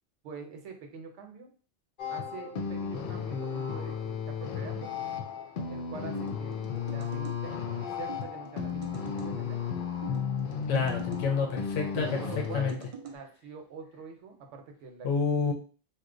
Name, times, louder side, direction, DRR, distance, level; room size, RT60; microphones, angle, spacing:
voice 1, 0.2-1.5 2.1-4.9 5.7-9.6 12.2-12.7 13.0-15.5, right 4 dB, 80° right, 3 dB, 1.0 m, -45 dB
sound 1, 2.0-12.7, left 7 dB, 60° left, 0.5 m, -34 dB
sound 2, 6.1-7.4 8.1-9.3 10.0-11.3 12.0-13.2, right 5 dB, 60° right, 0.3 m, -45 dB
voice 2, 10.7-12.2 12.5-12.8 15.0-15.5, left 5 dB, 85° left, 1 dB, 1.0 m, -28 dB
2.8 x 2.2 x 3.7 m, 0.38 s
omnidirectional pair, 1.2 m